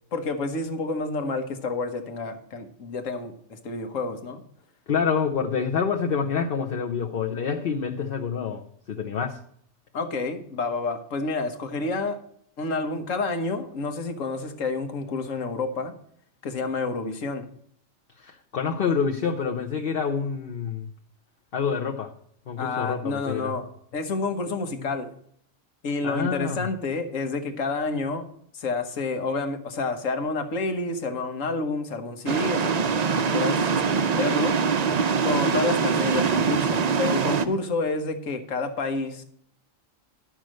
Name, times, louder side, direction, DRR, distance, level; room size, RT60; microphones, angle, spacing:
voice 1, 0.1-4.4 9.9-12.2 12.6-15.9 16.4-17.4 22.6-25.1 25.8-28.3 28.5-34.6 35.2-39.2, left 3 dB, 80° left, 8 dB, 1.5 m, -29 dB
voice 2, 4.9-9.4 18.2-20.9 21.5-22.1 22.5-23.5 26.0-26.7, left 6 dB, 50° left, 3 dB, 1.0 m, -27 dB
sound 1, 32.3-37.4, right 5 dB, 45° right, 0.5 m, -23 dB
10.5 x 6.3 x 6.3 m, 0.66 s
omnidirectional pair, 1.3 m